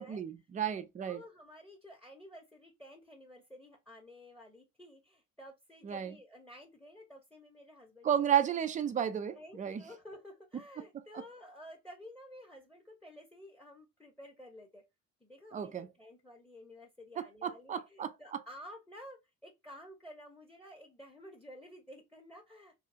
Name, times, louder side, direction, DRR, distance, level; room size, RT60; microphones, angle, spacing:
voice 1, 0.0-1.2 5.8-6.2 8.0-9.8 11.1-11.2 15.5-15.9 17.2-18.4, right 9 dB, 20° right, 0.3 m, -33 dB
voice 2, 1.0-8.1 9.4-14.8 15.2-22.7, equal, ahead, 0.7 m, -52 dB
2.7 x 2.4 x 2.6 m
figure-of-eight pair, 50°, 46 cm